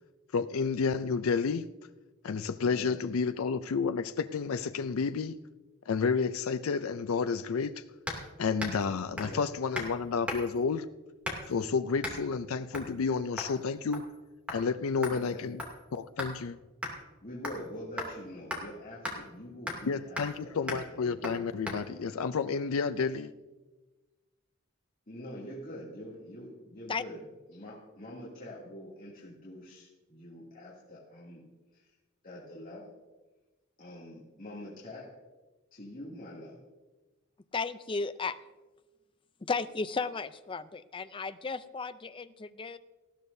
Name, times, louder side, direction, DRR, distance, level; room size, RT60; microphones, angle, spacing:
voice 1, 0.3-1.7 2.2-5.4 5.9-7.8 8.4-10.9 11.5-14.0 14.5-15.6 15.9-16.6 19.9-23.3, left 5 dB, 85° left, 0.5 m, -30 dB
voice 2, 2.6-2.9 9.1-9.5 15.0-15.4 17.2-21.4 25.1-27.2 27.5-31.4 31.7-31.9 32.2-32.9 33.8-35.2 35.7-36.6, left 1 dB, 40° left, 2.6 m, -45 dB
sound 1, 8.1-8.3 8.6-8.8 9.2-9.4 9.7-9.9 10.3-10.6 11.2-11.6 12.0-12.2 12.7-12.9 13.4-13.6 13.9-14.2 14.5-14.6 15.0-16.4 16.8-16.9 17.4-17.7 18.0-18.1 18.5-18.6 19.0-19.2 19.7-19.9 20.2-20.4 20.7-20.8 21.2-21.4 21.7-21.8, left 1 dB, 5° right, 2.6 m, -37 dB
voice 3, 37.5-38.4 39.4-42.8, left 4 dB, 25° left, 0.5 m, -34 dB
19.0 x 14.0 x 2.7 m
head